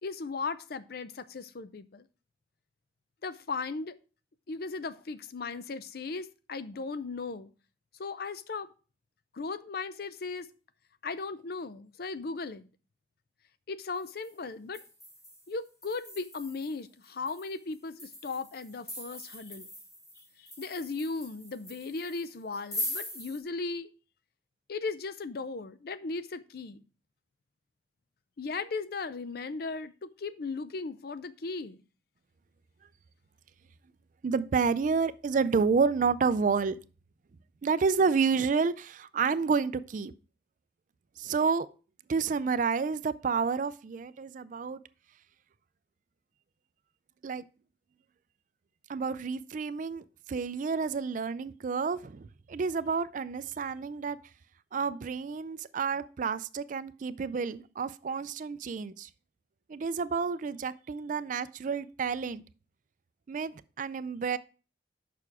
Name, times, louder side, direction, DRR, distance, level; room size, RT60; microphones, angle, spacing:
voice 1, 0.0-2.0 3.2-3.9 4.5-7.5 8.0-8.7 9.3-10.5 11.0-12.7 13.7-14.8 15.5-19.7 20.4-23.9 24.7-26.8 28.4-31.8, left 4 dB, 55° left, 0.5 m, -37 dB
sound 1, 14.0-14.3 14.7-23.4, left 1 dB, 20° left, 1.7 m, -42 dB
voice 2, 34.2-36.8 37.6-40.1 41.2-41.7 42.1-44.8 47.2-47.4 48.9-54.2 54.7-59.1 59.7-62.4 63.3-64.4, right 5 dB, 45° right, 0.4 m, -29 dB
6.8 x 5.9 x 4.8 m
head